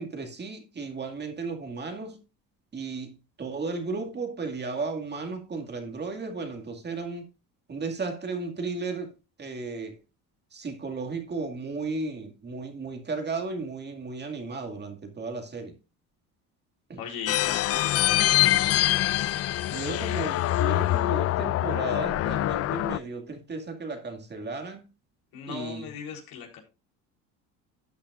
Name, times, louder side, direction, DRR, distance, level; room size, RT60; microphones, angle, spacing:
voice 1, 0.0-2.2 2.7-7.2 7.7-10.0 10.5-15.8 16.9-17.0 19.7-24.8 25.5-25.9, right 4 dB, 30° right, 2.2 m, -34 dB
voice 2, 17.0-18.7 25.3-26.6, left 7 dB, 70° left, 3.9 m, -39 dB
sound 1, 17.3-23.0, left 14 dB, 40° left, 0.4 m, -24 dB
13.0 x 8.4 x 2.5 m
supercardioid pair, 100°, 37 cm